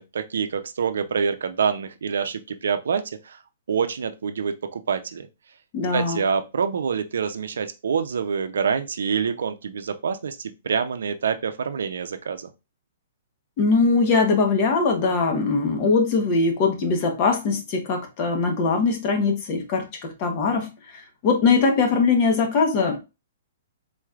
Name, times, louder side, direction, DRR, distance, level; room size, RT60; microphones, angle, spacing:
voice 1, 0.0-3.4 3.7-5.3 5.9-12.5, right 6 dB, 85° right, 0.5 m, -26 dB
voice 2, 5.7-6.2 13.6-23.0, left 4 dB, 30° left, 0.9 m, -21 dB
4.0 x 3.2 x 2.4 m
hypercardioid pair, 165°, 0 cm